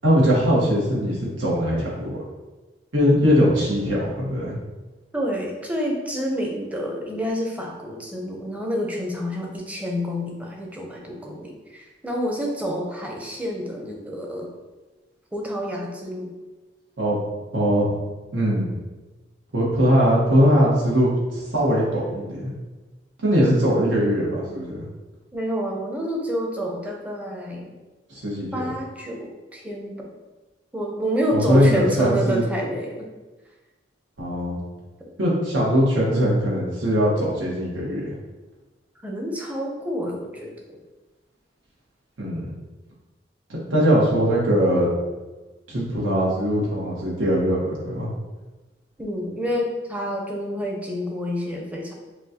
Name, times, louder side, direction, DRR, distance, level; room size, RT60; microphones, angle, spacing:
voice 1, 0.0-2.1 2.9-4.5 17.0-17.2 17.5-17.9 18.3-18.7 19.5-22.5 23.2-24.8 28.1-28.7 31.3-32.4 34.2-34.6 35.2-38.1 42.2-42.5 43.7-44.9 45.7-48.1, equal, 90° right, -6 dB, 1.2 m, -21 dB
voice 2, 5.1-14.5 15.3-16.3 25.3-27.7 28.5-30.1 30.7-33.1 39.0-40.6 49.0-51.9, equal, 10° right, -1 dB, 0.6 m, -28 dB
6.1 x 2.3 x 2.8 m, 1.2 s
head